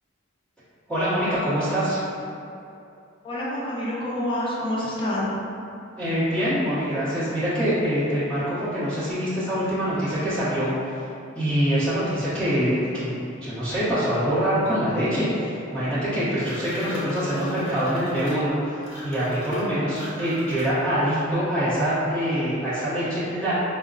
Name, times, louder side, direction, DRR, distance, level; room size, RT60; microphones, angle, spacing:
voice 1, 0.9-2.0 6.0-11.0 11.3-13.1 13.4-18.7 19.0-23.5, equal, 5° left, -17 dB, 1.0 m, -24 dB
voice 2, 3.2-5.3, left 1 dB, 25° left, -7 dB, 0.6 m, -27 dB
sound 1, 16.4-21.0, equal, 70° left, 0.9 m, -41 dB
5.0 x 2.1 x 2.5 m, 2.7 s
head